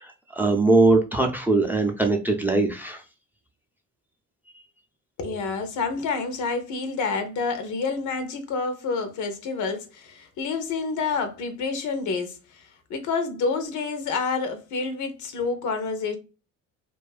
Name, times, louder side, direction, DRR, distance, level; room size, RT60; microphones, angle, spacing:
voice 1, 0.0-3.0, right 3 dB, 5° right, 0.5 m, -21 dB
voice 2, 5.2-16.2, left 4 dB, 75° left, 0.7 m, -28 dB
2.6 x 2.3 x 2.3 m
cardioid pair, 90°, 30 cm